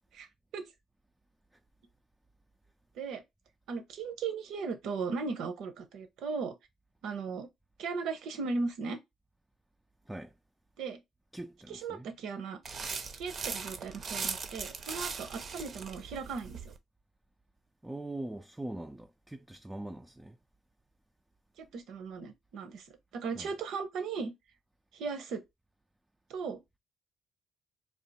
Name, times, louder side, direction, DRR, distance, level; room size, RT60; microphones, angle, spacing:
voice 1, 3.7-6.6 7.0-7.5 7.8-9.0 10.8-11.0 11.7-12.6 13.1-16.7 21.6-24.3 24.9-25.4 26.3-26.8, right 4 dB, 80° right, 0.8 m, -37 dB
voice 2, 11.3-12.1 17.8-20.4 23.4-23.5, right 1 dB, 10° right, 0.4 m, -42 dB
sound 1, 12.6-16.8, right 5 dB, 50° right, 0.6 m, -39 dB
3.5 x 2.4 x 4.1 m
cardioid pair, 90°, 0 cm